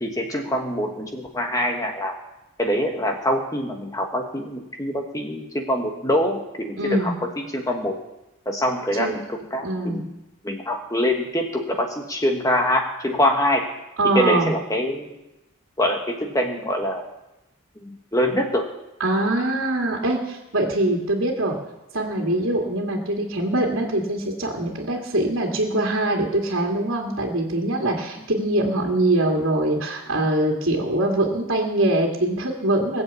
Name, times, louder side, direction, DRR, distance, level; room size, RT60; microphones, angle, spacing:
voice 1, 0.0-2.2 2.6-8.0 8.4-10.1 10.4-13.7 14.1-15.2 15.8-17.0 17.8-18.7, equal, 15° left, 2 dB, 1.3 m, -24 dB
voice 2, 6.8-7.1 9.0-9.1 9.6-10.0 14.0-14.5 19.0-21.6 21.9-33.0, right 1 dB, 75° right, 0 dB, 2.2 m, -23 dB
20.5 x 7.2 x 8.2 m, 0.96 s
head